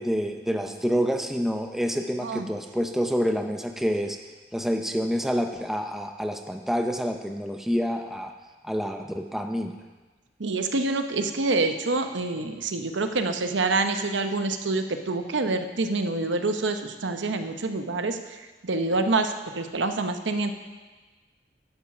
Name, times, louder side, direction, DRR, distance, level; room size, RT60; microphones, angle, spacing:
voice 1, 0.0-4.2 4.5-8.3 8.6-9.7, equal, ahead, 4 dB, 0.5 m, -27 dB
voice 2, 10.4-18.2 18.6-20.5, right 3 dB, 85° right, 7 dB, 0.8 m, -26 dB
11.5 x 7.3 x 6.0 m, 1.3 s
head